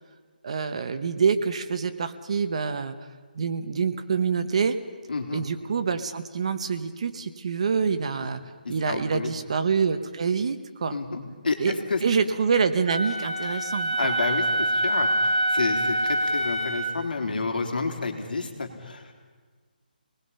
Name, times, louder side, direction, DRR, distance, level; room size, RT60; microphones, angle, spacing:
voice 1, 0.4-3.0 3.3-4.8 5.3-8.4 8.7-11.0 11.6-11.7 12.0-14.1, right 5 dB, 40° right, 9 dB, 1.1 m, -26 dB
voice 2, 5.1-5.4 8.9-9.3 10.9-12.0 14.0-19.2, left 4 dB, 70° left, 4 dB, 3.3 m, -30 dB
Wind instrument woodwind instrument, 12.9-17.0, right 1 dB, 20° right, 1.6 m, -25 dB
27.0 x 20.0 x 5.6 m, 1.5 s
hypercardioid pair, 170°, 5 cm